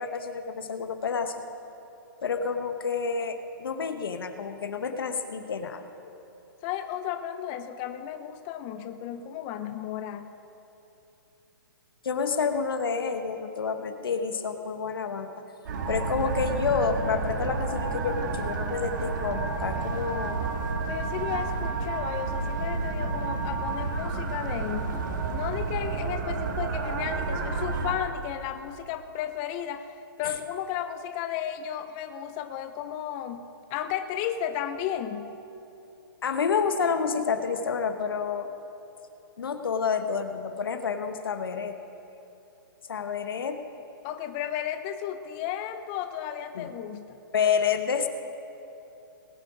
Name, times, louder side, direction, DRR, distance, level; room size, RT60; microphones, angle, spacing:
voice 1, 0.0-1.3 2.2-6.1 12.0-15.3 15.9-20.4 30.2-30.3 36.2-38.5 39.4-41.8 42.9-43.6 46.5-46.7 47.3-48.1, left 6 dB, 70° left, 8 dB, 1.2 m, -29 dB
voice 2, 6.6-10.3 20.9-25.0 25.3-33.4 33.7-35.3 44.0-47.2, left 10 dB, 25° left, 9 dB, 0.5 m, -34 dB
sound 1, 15.7-27.9, right 4 dB, 50° right, 2.0 m, -30 dB
20.0 x 8.0 x 5.1 m, 2.9 s
hypercardioid pair, 150°, 12 cm